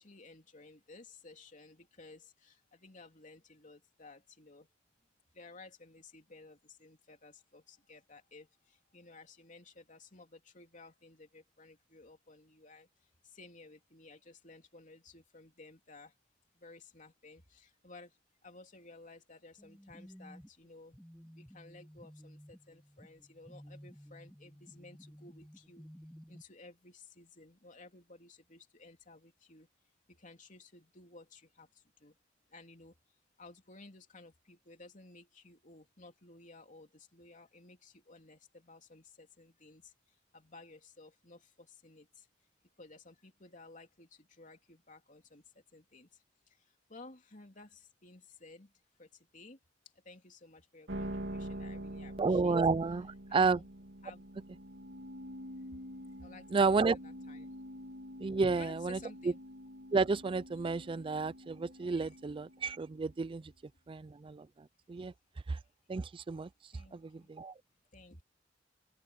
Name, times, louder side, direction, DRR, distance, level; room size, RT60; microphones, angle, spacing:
voice 1, 0.0-4.7 5.3-12.9 13.3-16.1 16.6-18.1 18.4-21.0 21.3-25.8 26.3-29.7 30.1-31.7 32.0-32.1 32.5-32.9 33.4-39.9 40.3-42.3 42.8-45.4 45.7-46.1 46.9-48.7 49.0-49.1 49.3-49.6 50.0-52.6 53.3-53.7 54.0-54.2 56.2-57.5 58.6-59.4 61.9-62.1 66.7-67.3 67.9-68.2, left 3 dB, 45° left, 3.2 m, -55 dB
sound 1, 19.6-26.4, equal, 5° left, 1.5 m, -54 dB
sound 2, 50.9-63.2, equal, 85° right, 2.7 m, -46 dB
voice 2, 52.2-53.6 56.5-57.0 58.2-59.0 59.2-59.3 59.9-63.5 63.9-64.5 64.9-65.1 65.5-65.6 65.9-67.5, right 4 dB, 30° right, 0.4 m, -31 dB
head